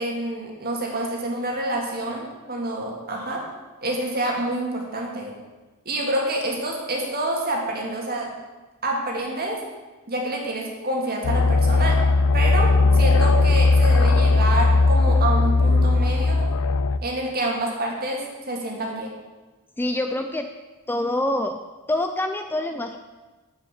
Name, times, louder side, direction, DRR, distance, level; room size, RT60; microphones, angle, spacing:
voice 1, 0.0-3.5 3.8-5.3 5.9-8.3 8.8-9.6 10.1-12.0 12.3-16.5 17.0-19.1, right 1 dB, 45° right, 0 dB, 2.0 m, -27 dB
sound 1, 11.2-17.0, left 3 dB, 75° left, 0.4 m, -18 dB
voice 2, 19.8-20.5 20.9-21.6 21.9-23.0, left 1 dB, 10° left, 6 dB, 0.4 m, -25 dB
7.1 x 6.6 x 7.2 m, 1.2 s
head